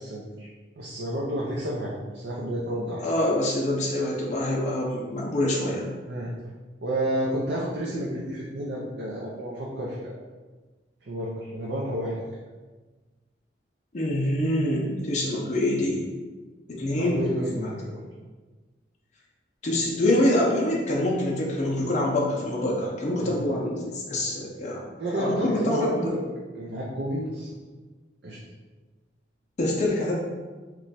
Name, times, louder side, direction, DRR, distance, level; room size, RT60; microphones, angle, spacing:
voice 1, 0.0-3.1 6.1-6.3 6.8-10.2 11.0-12.2 17.0-18.0 23.2-23.4 25.0-26.3 26.6-27.5 28.2-28.4, right 1 dB, 75° right, -5 dB, 0.5 m, -30 dB
voice 2, 3.0-5.9 13.9-16.1 16.7-17.3 19.6-24.9 25.1-26.1 29.6-30.1, left 1 dB, 40° left, -3 dB, 0.5 m, -25 dB
3.0 x 2.2 x 4.0 m, 1.3 s
head